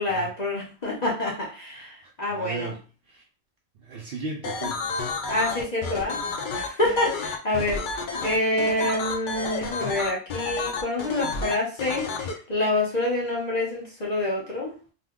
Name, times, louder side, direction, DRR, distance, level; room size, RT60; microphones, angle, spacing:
voice 1, 0.0-1.9 2.2-2.7 5.3-6.2 6.5-14.7, left 1 dB, 35° left, -4 dB, 0.9 m, -27 dB
voice 2, 1.7-3.2 3.8-4.8, right 4 dB, 60° right, 0 dB, 0.7 m, -37 dB
sound 1, 4.4-12.3, left 5 dB, 60° left, 0.5 m, -30 dB
2.7 x 2.2 x 3.6 m, 0.35 s
omnidirectional pair, 1.3 m